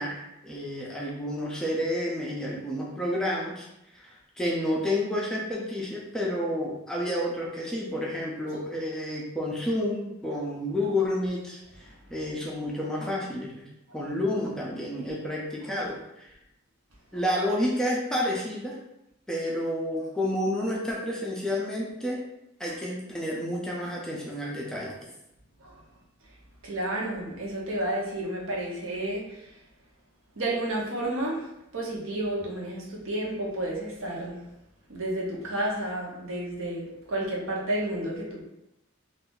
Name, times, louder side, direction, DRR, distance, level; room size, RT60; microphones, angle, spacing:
voice 1, 0.0-3.7 3.9-13.7 13.9-16.3 17.1-18.8 19.3-22.2 22.6-24.9, left 1 dB, 5° left, -4 dB, 0.4 m, -30 dB
voice 2, 26.6-29.5 30.4-31.4 31.7-34.4 34.9-38.4, right 1 dB, 65° right, -3 dB, 0.8 m, -31 dB
2.5 x 2.4 x 3.7 m, 0.88 s
head